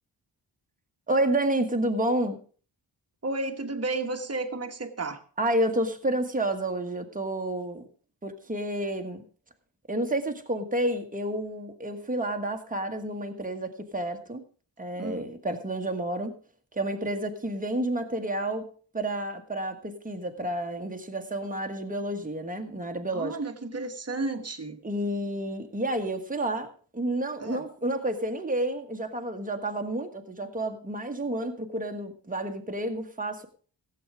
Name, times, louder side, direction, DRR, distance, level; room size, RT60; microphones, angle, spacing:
voice 1, 1.1-2.4 5.4-7.8 8.2-9.2 9.9-14.4 14.8-16.3 16.7-18.7 18.9-23.4 24.8-33.5, right 1 dB, 20° right, 5 dB, 1.5 m, -30 dB
voice 2, 3.2-5.2 15.0-15.3 23.1-24.8 27.4-27.6, right 2 dB, 35° right, 7 dB, 1.4 m, -32 dB
16.0 x 8.0 x 4.9 m, 0.41 s
wide cardioid pair, 115°, 44 cm